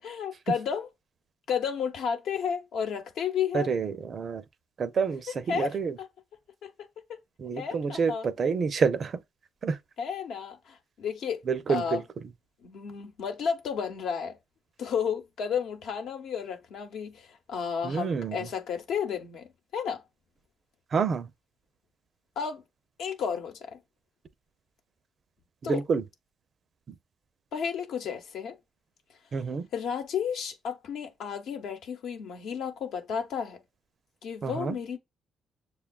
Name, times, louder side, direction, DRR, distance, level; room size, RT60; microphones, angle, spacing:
voice 1, 0.0-0.9 1.5-3.7 5.3-6.1 6.6-6.7 7.1-7.2 7.6-8.3 10.0-11.4 11.7-12.0 12.6-14.4 14.8-20.0 22.4-22.6 23.0-23.8 25.6-25.8 27.5-28.6 29.7-33.6 34.2-35.0, left 7 dB, 75° left, 0.8 m, -32 dB
voice 2, 3.5-4.4 4.8-5.9 7.4-9.2 9.6-9.8 11.5-12.0 17.8-18.4 20.9-21.3 25.6-26.0 26.9-27.0 29.3-29.7 34.4-34.8, right 5 dB, 50° right, 0.4 m, -28 dB
6.7 x 2.3 x 2.3 m
cardioid pair, 90°, 0 cm